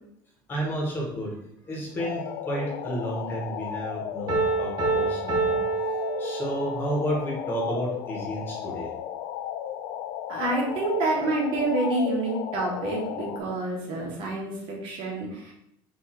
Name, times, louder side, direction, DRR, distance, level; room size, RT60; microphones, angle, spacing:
voice 1, 0.5-1.4 1.6-5.6 6.2-8.9, right 1 dB, 20° left, -1 dB, 1.1 m, -31 dB
sound 1, 2.0-13.4, left 10 dB, 65° left, 0.4 m, -35 dB
Piano, 4.3-6.9, right 3 dB, 40° right, 1.1 m, -27 dB
voice 2, 10.3-15.5, right 2 dB, 60° right, -2 dB, 1.4 m, -28 dB
4.5 x 2.5 x 4.2 m, 0.75 s
cardioid pair, 170°, 10 cm